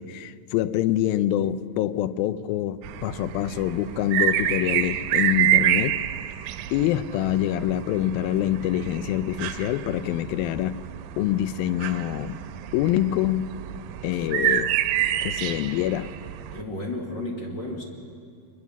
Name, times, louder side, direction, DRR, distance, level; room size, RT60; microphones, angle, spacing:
voice 1, 0.0-6.0 6.7-10.8 11.2-12.4 12.7-13.5 14.0-14.8 15.2-16.1, left 13 dB, 80° left, 2.4 m, -25 dB
sound 1, 2.8-16.6, right 11 dB, 80° right, 2.4 m, -28 dB
voice 2, 16.5-17.8, left 1 dB, 40° left, 2.0 m, -32 dB
24.0 x 21.0 x 7.1 m
omnidirectional pair, 4.3 m